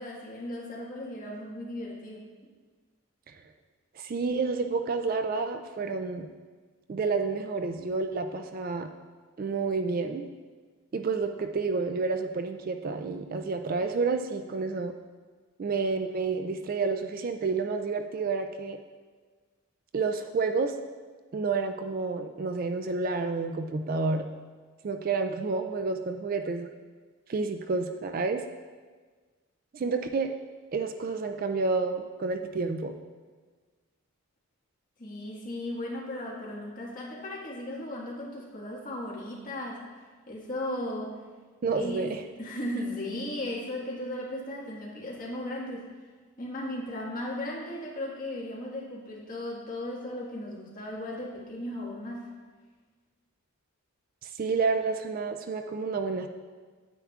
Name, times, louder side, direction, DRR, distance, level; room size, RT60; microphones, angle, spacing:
voice 1, 0.0-2.3 35.0-39.8 40.3-41.2 41.7-42.1 42.4-45.9 46.4-52.3, left 1 dB, 40° left, -5 dB, 1.6 m, -36 dB
voice 2, 4.0-6.3 6.9-8.9 9.4-10.3 10.9-14.9 15.6-18.8 19.9-20.8 21.3-24.3 24.8-26.7 27.3-28.4 29.7-30.3 30.7-32.9 41.6-42.2 54.2-56.3, right 4 dB, 40° right, 6 dB, 0.3 m, -29 dB
9.3 x 9.0 x 2.4 m, 1.4 s
head